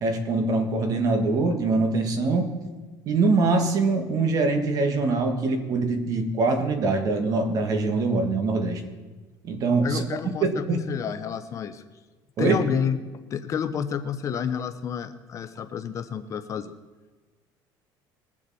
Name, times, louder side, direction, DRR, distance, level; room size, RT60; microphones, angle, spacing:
voice 1, 0.0-2.5 3.1-8.8 9.4-10.8 12.4-12.6, right 3 dB, 45° right, 6 dB, 1.7 m, -23 dB
voice 2, 9.8-11.8 12.4-13.0 13.3-16.7, left 7 dB, 35° left, 10 dB, 0.7 m, -30 dB
21.0 x 7.3 x 4.2 m, 1.3 s
cardioid pair, 140°, 9 cm